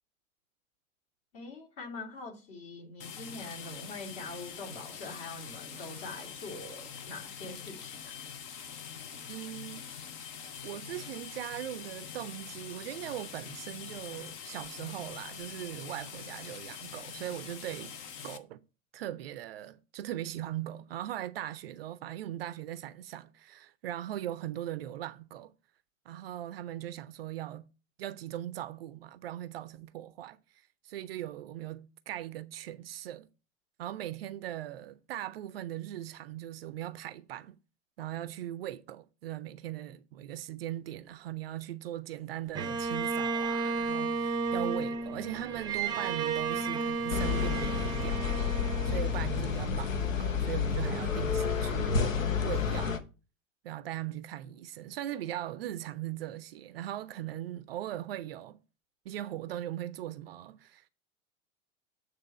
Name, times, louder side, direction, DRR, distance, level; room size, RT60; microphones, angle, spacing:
voice 1, 1.3-8.1, left 3 dB, 45° left, 2.6 m, -44 dB
sound 1, 3.0-18.4, left 7 dB, 20° left, 0.3 m, -44 dB
voice 2, 9.3-9.9 10.6-17.9 18.2-18.6 18.9-25.5 26.1-27.7 28.0-33.3 33.8-37.6 38.0-48.2 48.8-52.1 52.4-53.0 53.6-58.6 59.0-60.9, right 13 dB, 45° right, 0.5 m, -39 dB
Bowed string instrument, 42.6-49.8, right 4 dB, 10° right, 0.7 m, -33 dB
sound 2, 47.1-53.0, left 6 dB, 70° left, 1.1 m, -30 dB
8.6 x 3.4 x 5.5 m
figure-of-eight pair, 95°, 41 cm